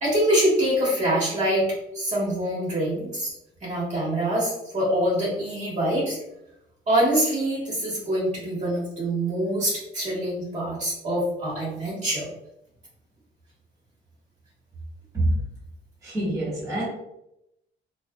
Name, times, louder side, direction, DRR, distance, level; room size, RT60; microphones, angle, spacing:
voice 1, 0.0-1.7 1.9-3.3 3.6-6.2 6.9-12.3, right 1 dB, 35° right, -7 dB, 1.3 m, -25 dB
voice 2, 16.0-16.8, right 1 dB, 15° right, -7 dB, 1.3 m, -25 dB
2.7 x 2.4 x 2.2 m, 0.84 s
cardioid pair, 90°, 20 cm